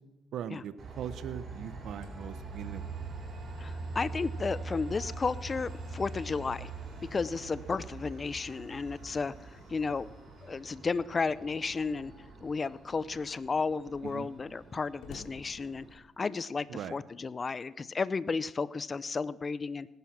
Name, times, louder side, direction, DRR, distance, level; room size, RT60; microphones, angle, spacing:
voice 1, 0.3-2.8 14.0-14.3 16.7-17.0, right 9 dB, 75° right, 12 dB, 0.8 m, -40 dB
Train, 0.8-15.9, right 3 dB, 50° right, 4.8 m, -43 dB
Slam, 1.9-4.4 4.7-4.8 5.3-10.9 11.8-12.3 12.9-13.0 13.2-16.3, left 5 dB, 85° left, 2.4 m, -59 dB
voice 2, 3.6-6.7 7.1-10.1 10.4-12.1 12.4-19.9, left 4 dB, 35° left, 18 dB, 0.5 m, -33 dB
18.5 x 10.5 x 6.0 m, 1.0 s
cardioid pair, 90°, 0 cm